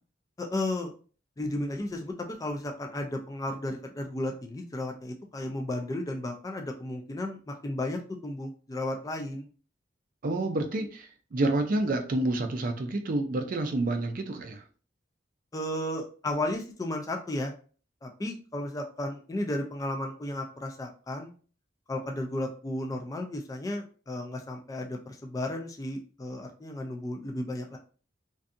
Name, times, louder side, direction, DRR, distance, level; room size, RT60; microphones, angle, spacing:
voice 1, 0.4-0.9 1.4-2.1 2.4-9.5 15.5-17.5 18.0-21.3 21.9-27.8, left 1 dB, 20° left, 3 dB, 0.3 m, -34 dB
voice 2, 10.2-14.6, right 2 dB, 45° right, 6 dB, 0.4 m, -29 dB
2.6 x 2.3 x 2.5 m, 0.39 s
head